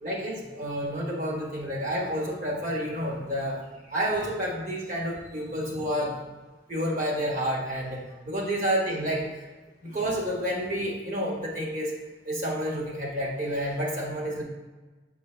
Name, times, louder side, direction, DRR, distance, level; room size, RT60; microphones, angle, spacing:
voice 1, 0.0-6.2 6.7-9.3 9.8-11.9 12.2-14.4, equal, 45° right, -3 dB, 1.4 m, -29 dB
7.6 x 4.5 x 3.2 m, 1.2 s
head